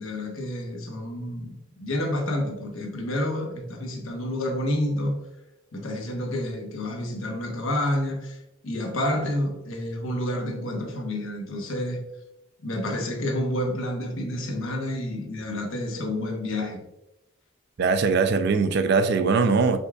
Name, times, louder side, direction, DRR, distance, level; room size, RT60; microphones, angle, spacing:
voice 1, 0.0-5.2 5.7-8.4 8.6-12.0 12.6-16.8, left 1 dB, 80° left, 1.0 m, -29 dB
voice 2, 17.8-19.8, right 4 dB, 55° right, 0.4 m, -21 dB
5.3 x 3.6 x 2.3 m
head